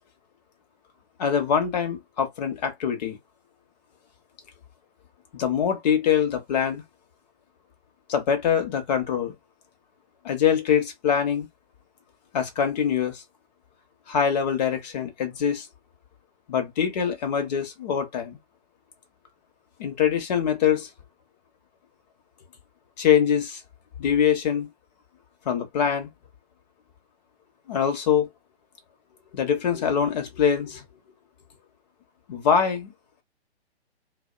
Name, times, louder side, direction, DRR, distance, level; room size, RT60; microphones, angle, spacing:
voice 1, 1.2-3.2 5.3-6.8 8.1-9.3 10.2-11.5 12.3-13.2 14.1-15.7 16.5-18.4 19.8-20.9 23.0-23.6 24.0-24.7 25.5-26.1 27.7-28.3 29.3-30.8 32.3-32.9, left 8 dB, 40° left, 0.8 m, -24 dB
2.4 x 2.1 x 2.4 m
hypercardioid pair, 135°, 33 cm